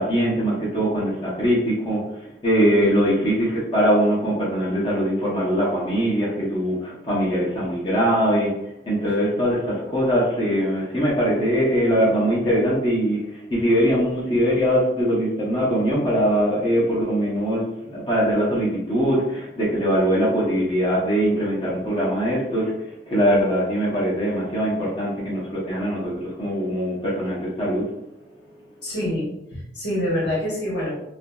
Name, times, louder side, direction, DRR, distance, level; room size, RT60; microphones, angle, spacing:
voice 1, 0.0-8.5 8.9-17.6 17.9-22.7 23.1-27.8, equal, 30° left, -7 dB, 0.7 m, -22 dB
voice 2, 2.8-3.3 28.8-30.9, equal, 90° left, -6 dB, 1.2 m, -27 dB
2.7 x 2.5 x 2.3 m, 0.85 s
head